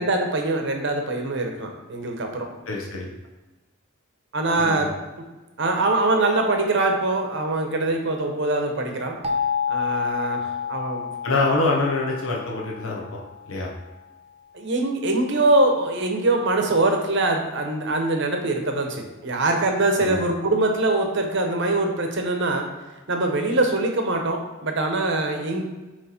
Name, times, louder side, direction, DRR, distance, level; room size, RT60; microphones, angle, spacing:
voice 1, 0.0-2.5 4.3-4.9 5.6-9.2 9.7-11.1 14.5-22.7 23.1-25.6, right 2 dB, 55° right, 3 dB, 0.9 m, -23 dB
voice 2, 2.7-3.1 4.6-4.9 11.2-13.2 13.4-13.7 20.0-20.2, left 2 dB, 75° left, -2 dB, 1.0 m, -25 dB
sound 1, 9.2-13.9, left 7 dB, 30° right, 0.5 m, -29 dB
7.7 x 3.2 x 4.3 m, 1.1 s
head